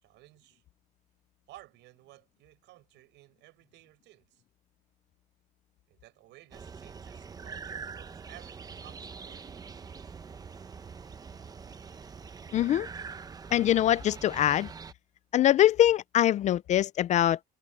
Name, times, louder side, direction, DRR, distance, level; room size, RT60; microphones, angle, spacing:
voice 1, 0.0-0.6 1.5-4.4 5.9-9.4, right 17 dB, 75° right, 6.6 m, -55 dB
sound 1, 6.5-14.9, right 5 dB, 20° right, 0.8 m, -44 dB
voice 2, 12.5-12.9 13.5-14.7 15.3-17.4, left 12 dB, 40° left, 0.4 m, -23 dB
cardioid pair, 150°, 19 cm